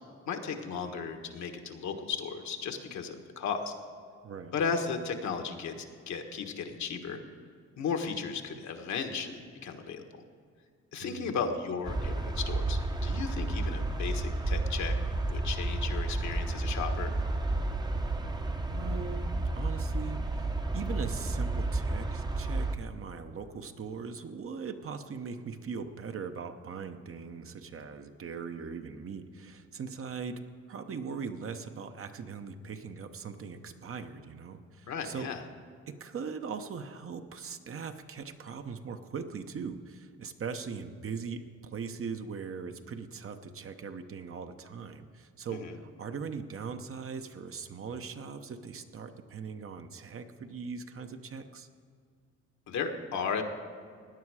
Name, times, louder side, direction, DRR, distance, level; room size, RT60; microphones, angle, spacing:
voice 1, 0.3-3.7 4.5-5.8 6.1-7.2 7.8-10.2 10.9-15.0 15.3-17.1 34.9-35.4 45.5-45.8 52.7-53.4, left 6 dB, 65° left, 5 dB, 1.4 m, -35 dB
voice 2, 4.2-4.5 11.0-11.4 18.6-35.3 35.9-51.7, right 5 dB, 45° right, 7 dB, 0.9 m, -40 dB
sound 1, 11.8-22.8, right 2 dB, 15° right, 0.8 m, -31 dB
17.0 x 9.8 x 4.8 m, 2.1 s
cardioid pair, 90°, 30 cm